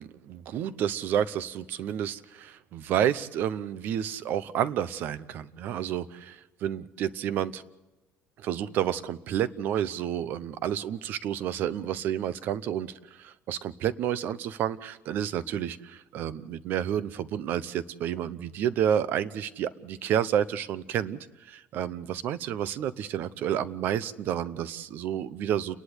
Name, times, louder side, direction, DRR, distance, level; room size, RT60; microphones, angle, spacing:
voice 1, 0.0-7.6 8.4-25.8, right 10 dB, 50° right, 16 dB, 0.8 m, -30 dB
30.0 x 11.0 x 8.1 m, 1.1 s
cardioid pair, 180°, 4 cm